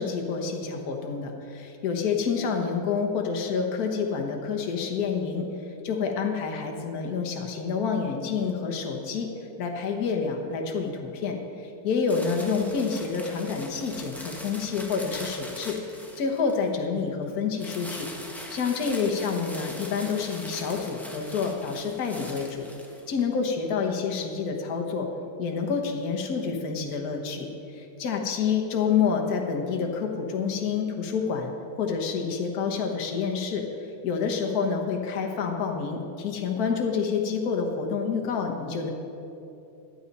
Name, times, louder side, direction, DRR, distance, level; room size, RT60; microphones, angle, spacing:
voice 1, 0.0-5.5 5.8-9.3 9.6-15.8 16.2-18.1 18.5-22.7 23.1-25.1 25.4-27.5 27.7-33.6 34.0-38.9, left 5 dB, 50° left, 2 dB, 1.5 m, -28 dB
sound 1, 12.1-16.7 17.6-23.2, equal, ahead, 0.7 m, -42 dB
14.5 x 10.5 x 4.2 m, 2.9 s
omnidirectional pair, 2.4 m